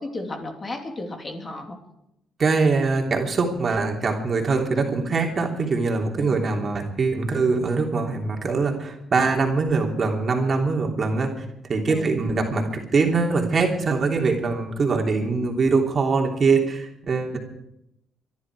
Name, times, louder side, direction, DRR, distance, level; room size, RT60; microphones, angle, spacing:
voice 1, 0.0-1.8 6.2-6.4 11.9-12.2 17.3-17.4, left 2 dB, 30° left, 3 dB, 3.0 m, -34 dB
voice 2, 2.4-11.3 11.7-17.4, right 4 dB, 45° right, 1 dB, 3.1 m, -23 dB
24.5 x 11.5 x 4.8 m, 0.81 s
cardioid pair, 90°, 0 cm